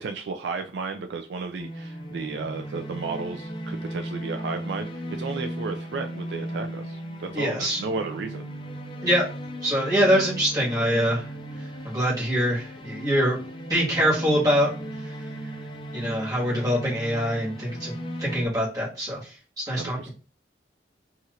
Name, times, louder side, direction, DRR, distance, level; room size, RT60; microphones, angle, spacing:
voice 1, 0.0-4.9 5.2-8.5 19.7-20.1, right 4 dB, 70° right, 5 dB, 0.3 m, -33 dB
sound 1, 1.6-18.5, right 1 dB, 25° left, 0.4 m, -36 dB
voice 2, 7.3-7.8 9.0-9.2 9.6-11.3 11.8-13.4 13.7-14.7 15.9-17.9 18.2-20.1, equal, 20° right, -5 dB, 1.3 m, -24 dB
2.7 x 2.4 x 2.9 m, 0.35 s
head